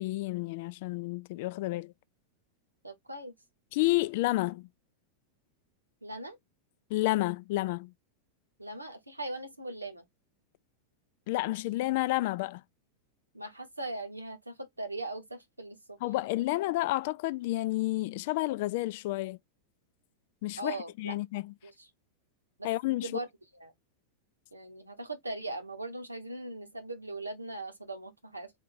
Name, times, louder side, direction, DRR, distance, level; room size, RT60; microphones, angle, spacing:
voice 1, 0.0-1.9 3.7-4.7 6.9-7.9 11.3-12.6 16.0-19.4 20.4-21.5 22.6-23.1, left 18 dB, 50° left, 0.3 m, -30 dB
voice 2, 2.8-3.3 6.0-6.4 8.6-10.0 13.3-16.0 20.6-21.1 21.6-21.9 22.6-22.7 23.0-23.3 23.6-23.7 24.5-28.5, right 2 dB, 85° right, 1.1 m, -40 dB
3.6 x 2.7 x 4.2 m
figure-of-eight pair, 90°, 0 cm